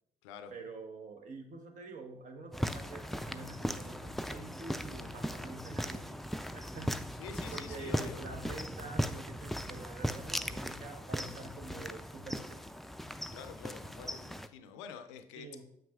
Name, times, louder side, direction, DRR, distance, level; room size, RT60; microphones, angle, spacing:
voice 1, 0.5-7.1 7.5-12.6 15.4-15.6, right 3 dB, 55° right, 4 dB, 1.0 m, -47 dB
sound 1, 2.5-14.5, equal, ahead, 0.3 m, -38 dB
voice 2, 7.2-8.2 13.3-15.5, left 7 dB, 90° left, 10 dB, 0.4 m, -47 dB
7.3 x 5.8 x 2.4 m, 0.75 s
hypercardioid pair, 55°, 15 cm